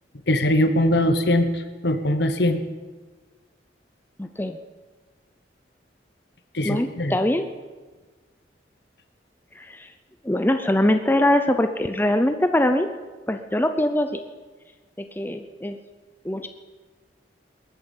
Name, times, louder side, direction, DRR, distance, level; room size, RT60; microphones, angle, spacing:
voice 1, 0.3-2.6 6.5-7.1, left 1 dB, 65° left, 10 dB, 1.2 m, -21 dB
voice 2, 4.2-4.6 6.6-7.4 9.6-9.9 10.2-12.9 13.3-14.2 15.0-15.8 16.2-16.5, left 1 dB, 10° left, 7 dB, 0.6 m, -22 dB
20.5 x 9.1 x 7.3 m, 1.3 s
head